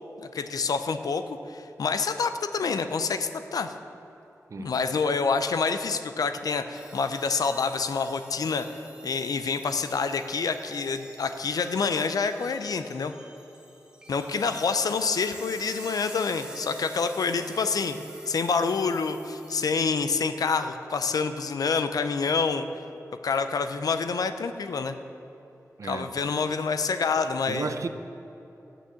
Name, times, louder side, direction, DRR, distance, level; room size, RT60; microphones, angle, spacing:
voice 1, 0.2-3.7 4.6-8.7 9.0-13.1 14.1-18.0 18.3-22.7 23.2-25.0 25.8-27.7, left 5 dB, 90° left, 9 dB, 0.6 m, -27 dB
sound 1, 6.7-19.8, right 1 dB, 15° right, 1.4 m, -46 dB
voice 2, 25.8-26.1 27.5-27.9, right 4 dB, 60° right, 10 dB, 0.5 m, -33 dB
9.0 x 7.0 x 7.1 m, 3.0 s
wide cardioid pair, 115°, 6 cm